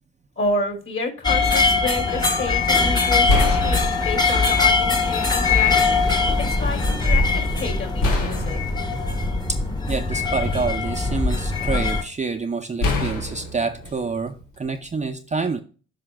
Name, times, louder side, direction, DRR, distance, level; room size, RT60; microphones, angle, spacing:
voice 1, 0.4-8.6, left 2 dB, 45° left, 3 dB, 3.3 m, -30 dB
sound 1, 1.2-12.0, left 4 dB, 15° left, 1.1 m, -21 dB
sound 2, 2.5-2.7 3.3-4.6 5.5-5.6 8.0-10.2 10.7-11.6 12.8-14.9, left 2 dB, 85° left, 1.5 m, -26 dB
voice 2, 9.9-15.6, right 4 dB, 25° right, 5 dB, 0.6 m, -27 dB
12.5 x 5.0 x 2.2 m, 0.38 s
cardioid pair, 90°, 30 cm